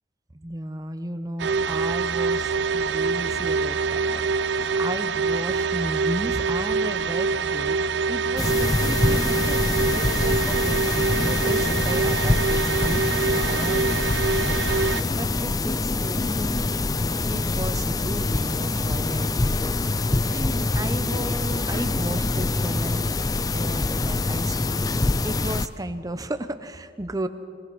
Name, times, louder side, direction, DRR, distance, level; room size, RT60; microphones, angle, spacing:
voice 1, 0.3-7.8 8.1-13.0 13.5-14.8 15.2-16.7 17.3-19.6 19.9-23.2 23.5-24.8 25.2-27.3, right 1 dB, 20° right, 10 dB, 0.7 m, -34 dB
sound 1, 1.4-15.0, right 4 dB, 60° right, 0.6 m, -25 dB
sound 2, 8.4-25.7, left 2 dB, 20° left, 0.4 m, -25 dB
24.0 x 19.0 x 6.1 m, 2.4 s
head